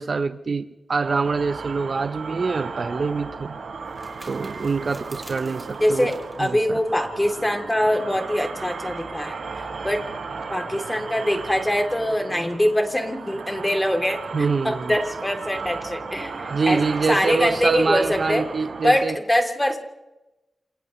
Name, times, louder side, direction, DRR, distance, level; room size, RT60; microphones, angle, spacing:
voice 1, 0.0-3.6 4.2-6.1 6.4-6.8 14.3-14.9 16.5-19.1, right 4 dB, 55° right, 10 dB, 0.9 m, -25 dB
sound 1, 1.0-19.0, right 4 dB, 85° right, 7.8 m, -35 dB
sound 2, 2.3-7.5, right 1 dB, 5° right, 6.7 m, -49 dB
voice 2, 5.8-10.0 10.5-16.8 17.1-18.4 18.8-19.8, left 1 dB, 15° left, 3 dB, 3.4 m, -23 dB
28.5 x 28.5 x 3.3 m, 1.0 s
wide cardioid pair, 80°, 0 cm